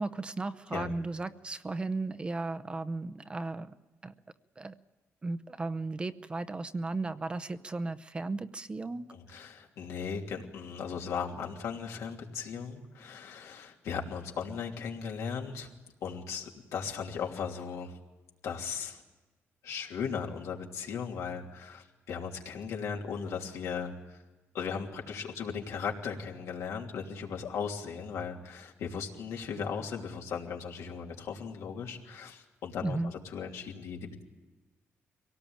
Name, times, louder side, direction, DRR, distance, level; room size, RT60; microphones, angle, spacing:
voice 1, 0.0-3.7 4.0-4.1 4.6-4.7 5.2-9.4 32.8-33.1, right 3 dB, 20° right, 12 dB, 0.7 m, -35 dB
voice 2, 9.1-15.7 16.0-18.0 18.4-19.0 19.6-24.2 24.5-33.0 33.3-34.2, left 6 dB, 85° left, 0 dB, 3.1 m, -37 dB
24.5 x 18.0 x 8.8 m, 1.2 s
cardioid pair, 145°, 5 cm